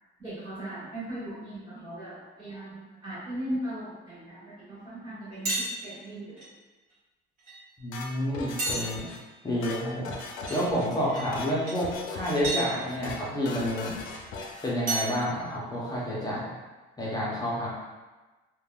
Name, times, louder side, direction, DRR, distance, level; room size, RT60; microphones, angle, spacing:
voice 1, 0.2-6.5, right 1 dB, 20° right, -13 dB, 1.5 m, -38 dB
sound 1, 5.4-5.8 6.4-6.5 7.5-7.6 8.6-9.3 10.5-10.6 11.1-11.3 11.6-11.8 12.4-12.7 14.1-14.2 14.9-15.2, right 2 dB, 40° right, 0.9 m, -31 dB
voice 2, 7.8-9.1 9.4-14.0 14.6-16.5 17.0-17.7, equal, 20° left, -6 dB, 0.5 m, -29 dB
sound 2, 7.9-9.2 9.5-10.9 11.2-11.5 11.8-12.6 12.9-13.2 13.5-14.7, left 4 dB, 80° left, 0.5 m, -39 dB
3.4 x 2.2 x 2.2 m, 1.2 s
cardioid pair, 155°, 21 cm